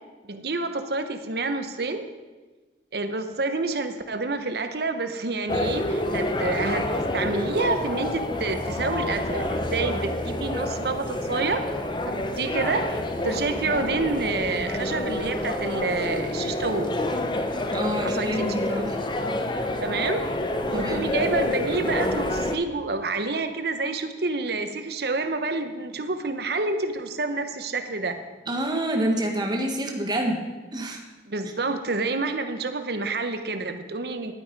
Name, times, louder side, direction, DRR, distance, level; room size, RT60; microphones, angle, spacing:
voice 1, 0.2-2.0 2.9-6.9 7.1-11.6 12.1-16.9 18.0-18.9 19.8-20.2 20.7-28.2 31.3-34.3, right 3 dB, 60° right, 8 dB, 0.9 m, -28 dB
sound 1, 5.5-22.6, left 1 dB, 25° left, 0.7 m, -28 dB
voice 2, 17.7-19.0 20.7-21.1 28.5-30.4 30.7-31.0, right 1 dB, 25° right, 2 dB, 1.4 m, -27 dB
11.5 x 9.2 x 5.3 m, 1.3 s
head